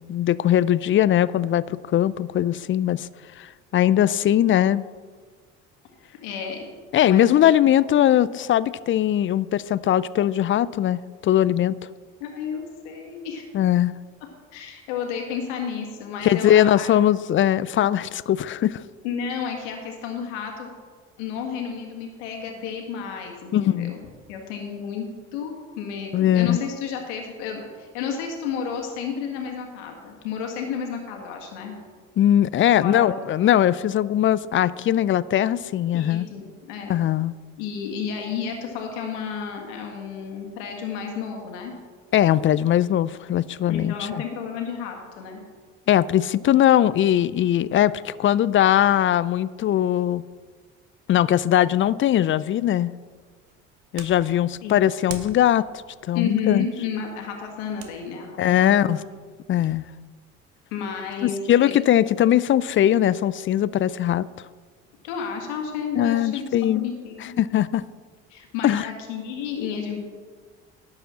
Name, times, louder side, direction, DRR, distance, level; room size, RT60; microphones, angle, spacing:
voice 1, 0.0-3.1 3.4-4.8 6.9-11.8 13.5-13.9 16.2-18.8 23.5-23.9 26.1-26.6 32.2-36.3 36.9-37.3 42.1-44.2 45.9-50.2 51.1-52.9 53.9-55.6 56.0-56.7 58.4-59.0 59.5-59.8 61.2-64.3 66.0-66.9 67.2-67.8 68.6-68.8, left 11 dB, 35° left, 18 dB, 0.4 m, -20 dB
voice 2, 6.2-6.7 7.0-7.5 12.2-13.5 14.5-16.9 19.0-20.7 21.2-24.0 24.3-25.1 25.3-31.7 32.7-33.2 35.9-36.9 37.6-41.7 43.7-45.4 54.6-54.8 56.1-59.0 60.7-61.7 65.0-67.4 68.3-70.1, left 6 dB, 80° left, 2 dB, 1.7 m, -31 dB
sound 1, 53.1-59.8, right 7 dB, 75° right, 1.2 m, -46 dB
11.5 x 4.8 x 7.5 m, 1.5 s
hypercardioid pair, 60°, 35 cm